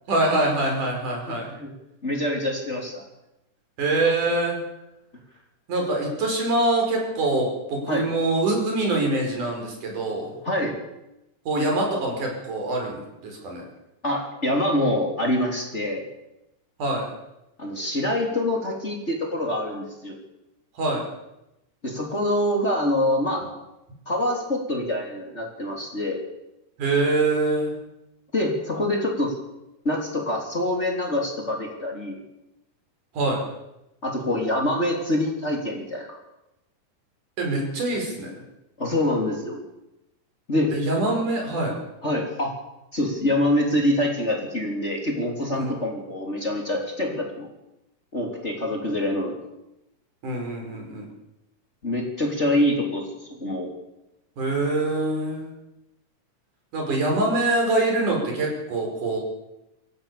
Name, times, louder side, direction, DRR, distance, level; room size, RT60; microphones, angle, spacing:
voice 1, 0.1-1.5 3.8-4.6 5.7-10.3 11.5-13.6 16.8-17.1 20.8-21.0 26.8-27.8 33.1-33.4 37.4-38.3 40.7-41.7 45.6-45.7 50.2-51.1 54.4-55.5 56.7-59.2, right 2 dB, 75° right, 1 dB, 6.8 m, -24 dB
voice 2, 1.3-1.7 2.0-3.0 7.9-8.1 10.2-10.8 14.0-16.0 17.6-20.2 21.8-23.5 24.1-26.2 28.3-29.3 29.8-32.2 34.0-36.2 38.8-39.6 40.5-40.7 42.0-42.5 42.9-47.5 48.1-49.4 51.8-53.7, left 1 dB, 20° left, 0 dB, 3.5 m, -25 dB
26.5 x 14.5 x 6.9 m, 0.89 s
omnidirectional pair, 3.6 m